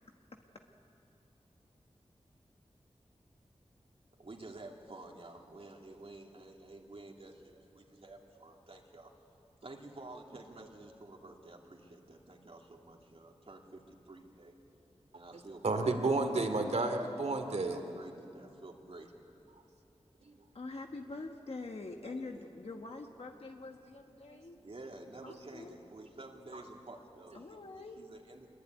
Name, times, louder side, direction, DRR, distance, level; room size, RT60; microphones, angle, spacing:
voice 1, 4.2-9.1 9.6-14.5 15.1-15.9 17.7-19.1 22.0-22.4 24.6-27.6 27.9-28.5, right 2 dB, 55° right, 1 dB, 2.6 m, -51 dB
voice 2, 15.6-17.8 24.3-24.4 25.2-25.3, right 3 dB, 70° right, 6 dB, 2.6 m, -31 dB
voice 3, 20.5-24.6 25.2-25.8 27.3-28.0, left 3 dB, 60° left, 3 dB, 1.4 m, -45 dB
25.5 x 22.5 x 9.4 m, 2.8 s
wide cardioid pair, 70°, 12 cm